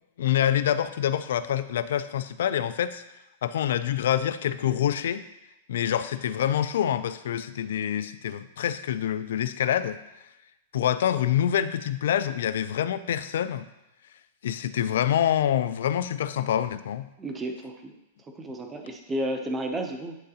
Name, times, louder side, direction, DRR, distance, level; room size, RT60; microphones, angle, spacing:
voice 1, 0.2-3.0 3.4-5.2 5.7-10.0 10.7-13.7 14.4-17.1, left 10 dB, 75° left, 13 dB, 0.4 m, -26 dB
voice 2, 17.2-17.9 18.4-20.2, right 1 dB, 10° right, 4 dB, 0.5 m, -32 dB
10.0 x 3.8 x 2.8 m, 0.94 s
supercardioid pair, 170°, 0 cm